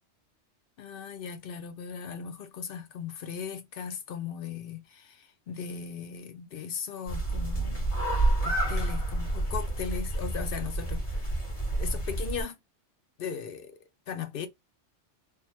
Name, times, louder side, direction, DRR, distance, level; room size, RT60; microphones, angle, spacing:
voice 1, 0.8-8.0 8.4-11.4 11.8-12.6 13.2-14.5, left 7 dB, 60° left, 0.7 m, -38 dB
sound 1, 7.1-12.4, right 2 dB, 30° left, 1.4 m, -29 dB
3.4 x 2.1 x 2.9 m
omnidirectional pair, 1.2 m